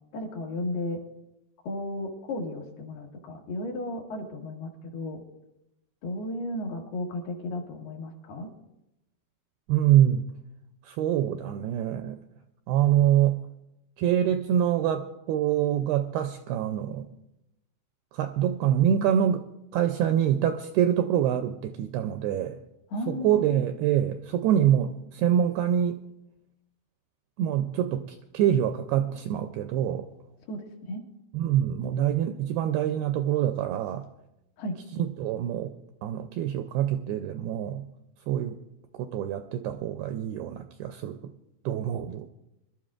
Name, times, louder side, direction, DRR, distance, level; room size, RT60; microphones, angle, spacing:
voice 1, 0.1-1.0 1.6-5.2 6.0-8.5 22.9-23.6 30.5-31.0 34.6-34.7, left 1 dB, 70° left, 0 dB, 3.4 m, -34 dB
voice 2, 9.7-10.2 10.8-12.2 12.7-13.4 14.0-17.1 18.1-19.4 19.7-22.6 23.1-26.0 27.4-30.1 31.3-34.1 34.9-35.7 36.0-37.9 38.3-38.6 38.9-41.3 41.7-42.3, right 10 dB, 85° right, 7 dB, 2.2 m, -25 dB
24.5 x 12.5 x 2.4 m, 0.87 s
omnidirectional pair, 5.0 m